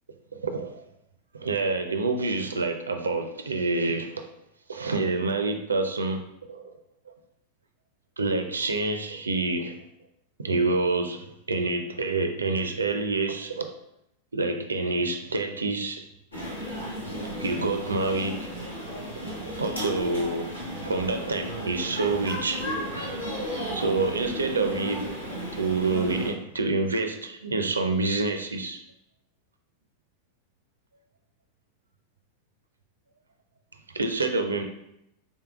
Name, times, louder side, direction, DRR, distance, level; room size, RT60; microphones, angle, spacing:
voice 1, 0.3-0.8 1.3-4.3 4.7-6.7 7.1-7.2 8.2-9.8 10.4-13.7 14.3-16.1 17.2-18.5 19.2-20.5 20.8-25.1 25.5-28.8 33.9-34.6, right 3 dB, 75° right, 6 dB, 0.4 m, -28 dB
sound 1, 16.3-26.3, equal, 85° left, 1.1 m, -34 dB
4.5 x 3.3 x 2.3 m, 0.80 s
figure-of-eight pair, 90°, 0 cm